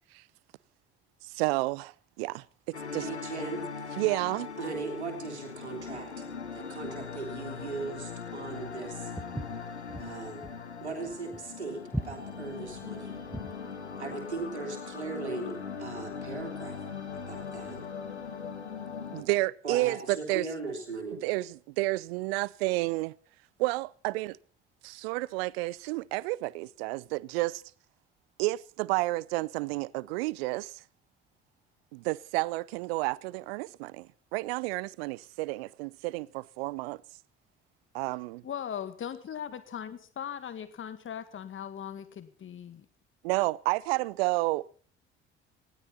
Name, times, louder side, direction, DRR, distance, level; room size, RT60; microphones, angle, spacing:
voice 1, 1.3-3.1 4.0-4.5 19.1-20.5 21.1-23.1 23.6-24.4 24.8-27.6 28.4-30.8 31.9-37.0 37.9-38.4 43.2-44.7, right 21 dB, 65° right, 0.6 m, -31 dB
sound 1, 2.7-19.2, left 6 dB, 85° left, 1.8 m, -40 dB
voice 2, 3.0-3.6 4.1-4.2 4.6-6.3 6.5-9.1 10.0-10.4 10.8-13.1 14.0-16.8 17.1-17.8 19.6-21.2, right 4 dB, 85° right, 3.2 m, -38 dB
Walk footsteps, 9.2-13.6, right 1 dB, 5° right, 1.3 m, -38 dB
voice 3, 38.4-42.9, left 9 dB, 40° left, 1.9 m, -39 dB
19.5 x 16.5 x 4.2 m
figure-of-eight pair, 50°, 33 cm